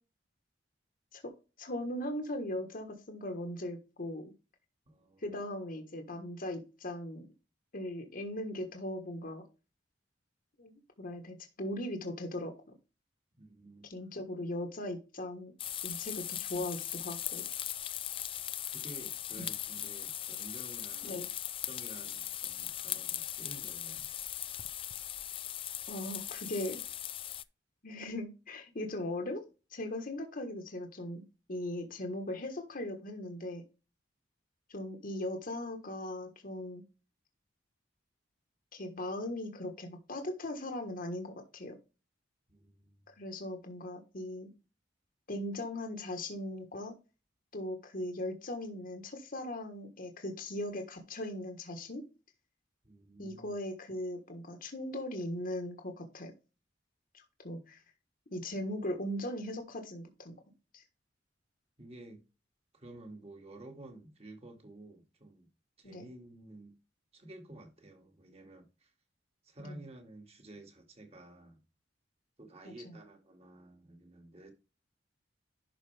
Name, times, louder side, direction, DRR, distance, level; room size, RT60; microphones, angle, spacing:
voice 1, 1.6-4.3 5.2-7.2 7.7-9.4 10.6-12.5 13.8-15.5 15.8-17.4 19.4-19.5 21.0-21.2 25.9-26.8 27.8-29.4 29.7-31.2 31.5-33.6 34.7-36.8 38.7-41.8 43.2-44.5 45.3-46.9 47.5-52.0 53.2-56.3 57.1-57.8 58.3-60.3 60.7-60.8 65.8-66.1 69.6-69.8 72.8-73.0, left 1 dB, 50° left, 1.4 m, -39 dB
voice 2, 4.9-5.2 13.4-13.9 18.6-21.2 21.7-24.1 42.5-43.1 52.8-53.5 61.8-62.2 62.7-65.5 65.8-66.8 67.1-68.9 69.4-71.6 72.4-74.5, right 2 dB, 35° right, 2.1 m, -52 dB
sound 1, 15.6-27.4, left 11 dB, 30° left, 0.3 m, -39 dB
11.5 x 4.7 x 3.4 m
head